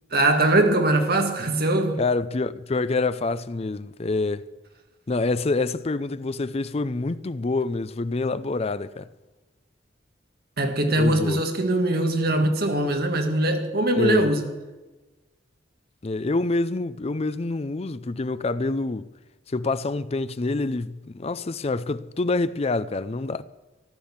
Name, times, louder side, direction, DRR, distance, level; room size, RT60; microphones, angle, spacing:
voice 1, 0.1-2.0 10.6-14.5, right 1 dB, 55° right, 1.8 m, -22 dB
voice 2, 2.0-4.5 5.1-9.1 11.0-11.4 13.9-14.3 16.0-19.1 19.5-23.4, left 3 dB, 35° left, 0.5 m, -26 dB
14.0 x 11.5 x 7.3 m
head